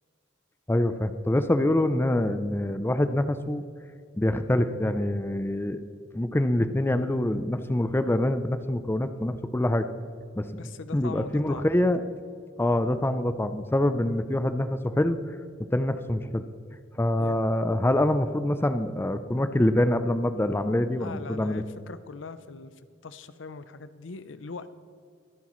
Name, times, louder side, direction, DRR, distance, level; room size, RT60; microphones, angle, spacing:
voice 1, 0.7-3.6 4.2-5.8 6.1-9.9 10.4-10.6 10.9-12.0 12.6-15.2 15.7-16.4 16.9-21.6, left 1 dB, 10° left, 10 dB, 0.5 m, -25 dB
voice 2, 10.6-11.7 17.2-17.3 20.9-22.7 23.0-24.7, left 4 dB, 80° left, 13 dB, 0.7 m, -41 dB
23.0 x 9.6 x 3.1 m, 2.2 s
head